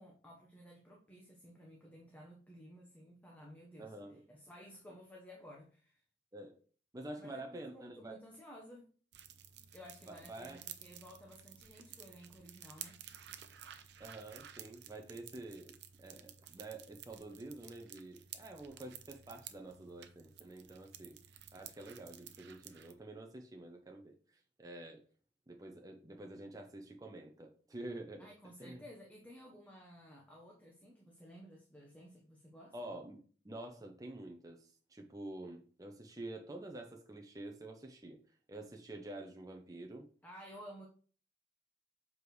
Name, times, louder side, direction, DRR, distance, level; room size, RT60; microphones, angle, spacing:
voice 1, 0.0-3.9 4.3-6.0 7.2-8.9 9.7-13.0 28.2-32.7 40.2-40.9, equal, 10° left, 1.1 m, -55 dB
voice 2, 3.8-4.2 6.3-6.6 6.9-8.2 10.0-10.6 14.0-15.7 16.0-21.2 21.5-24.1 24.6-25.0 25.5-28.3 28.6-28.8 32.7-38.2 38.5-40.1, right 2 dB, 20° right, 0.7 m, -48 dB
sound 1, 9.1-22.9, right 9 dB, 65° right, 0.7 m, -53 dB
7.4 x 4.8 x 3.2 m
head